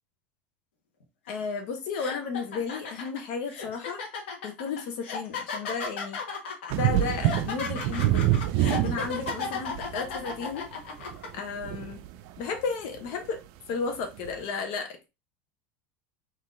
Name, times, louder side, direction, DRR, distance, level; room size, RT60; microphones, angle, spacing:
sound 1, 1.3-1.4 1.9-11.3, left 5 dB, 90° left, 1.4 m, -35 dB
voice 1, 1.3-4.0 4.4-6.2 6.7-10.7 11.3-12.0 12.4-13.4 13.7-15.1, left 5 dB, 65° left, 1.1 m, -33 dB
sound 2, 6.7-10.4 11.0-12.4 13.0-13.1 14.2-14.3, right 13 dB, 60° right, 0.5 m, -27 dB
3.9 x 2.9 x 3.7 m
supercardioid pair, 115°, 6 cm